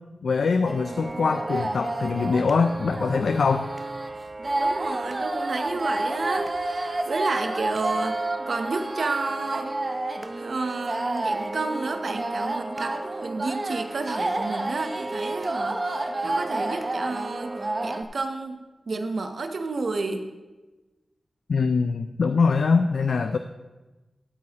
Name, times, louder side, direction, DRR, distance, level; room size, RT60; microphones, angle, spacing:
voice 1, 0.2-3.7 21.5-23.4, left 4 dB, 90° left, 9 dB, 0.3 m, -23 dB
sound 1, 0.7-18.0, right 2 dB, 30° right, 0.6 m, -30 dB
voice 2, 4.6-8.2 8.5-9.7 10.3-17.5 17.8-18.6 18.9-20.3, right 3 dB, 70° right, 6 dB, 0.7 m, -31 dB
13.0 x 8.3 x 2.9 m, 1.2 s
wide cardioid pair, 110°, 0 cm